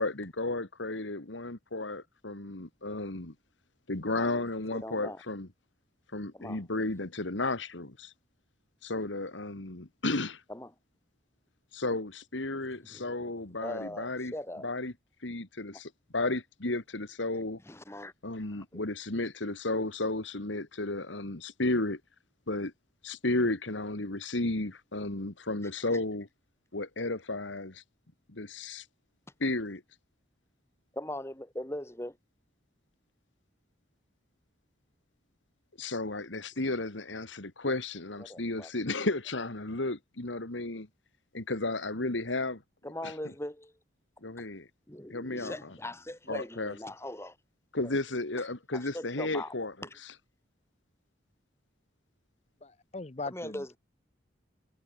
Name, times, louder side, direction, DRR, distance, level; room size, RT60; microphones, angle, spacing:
voice 1, 0.0-3.3 3.9-5.5 6.1-8.1 8.8-10.4 11.7-14.3 14.6-14.9 15.2-17.6 18.2-22.0 22.5-22.7 23.0-26.3 26.7-27.8 28.3-28.8 29.4-29.8 35.8-40.9 41.3-42.6 43.0-43.1 44.2-44.7 45.1-45.5 46.3-46.7 47.7-49.7, left 2 dB, 85° left, 2.2 m, -33 dB
voice 2, 4.1-4.4 4.7-5.2 6.3-6.6 10.5-10.7 12.9-13.3 13.6-14.7 15.7-15.8 17.6-18.1 30.9-32.2 38.2-38.7 42.8-43.7 44.9-47.4 47.8-47.9 48.4-48.5 48.7-49.5 49.8-50.0 53.3-53.7, left 1 dB, 15° left, 2.1 m, -40 dB
voice 3, 52.6-53.8, left 3 dB, 35° left, 0.8 m, -40 dB
head